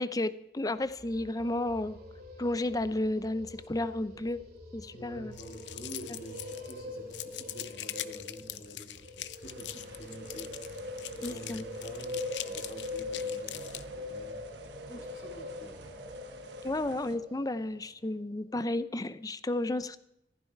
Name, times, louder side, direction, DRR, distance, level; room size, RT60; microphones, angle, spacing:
voice 1, 0.0-2.0 2.4-4.4 4.7-5.3 11.2-11.6 14.9-15.0 16.6-20.0, left 1 dB, 20° left, 14 dB, 0.6 m, -32 dB
sound 1, 0.8-17.8, left 2 dB, 60° right, 2.6 m, -43 dB
voice 2, 4.9-10.7 11.1-14.5 14.9-15.9, equal, 50° left, 2 dB, 3.7 m, -48 dB
sound 2, 5.3-6.8 7.1-13.8, left 13 dB, 85° left, 0.7 m, -42 dB
sound 3, 9.4-17.2, right 3 dB, 80° right, 1.5 m, -53 dB
15.0 x 15.0 x 4.7 m, 0.84 s
head